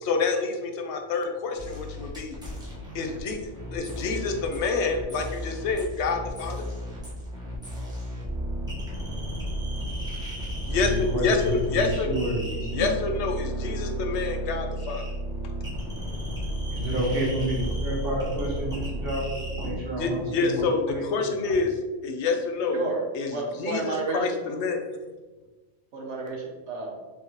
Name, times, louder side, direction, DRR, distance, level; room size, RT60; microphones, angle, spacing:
voice 1, 0.0-2.4 2.9-3.4 3.7-6.6 10.7-12.1 12.7-15.0 19.9-21.7 22.0-22.8 23.1-23.3 23.6-23.8 24.1-24.9, left 4 dB, 75° left, 4 dB, 0.9 m, -27 dB
sound 1, 1.5-19.8, right 1 dB, 5° right, 1.0 m, -33 dB
voice 2, 10.7-12.9 16.7-21.5, equal, 55° right, -4 dB, 1.5 m, -30 dB
voice 3, 22.7-24.4 25.9-27.0, right 3 dB, 80° right, -1 dB, 1.2 m, -31 dB
4.5 x 3.5 x 2.8 m, 1.2 s
omnidirectional pair, 1.2 m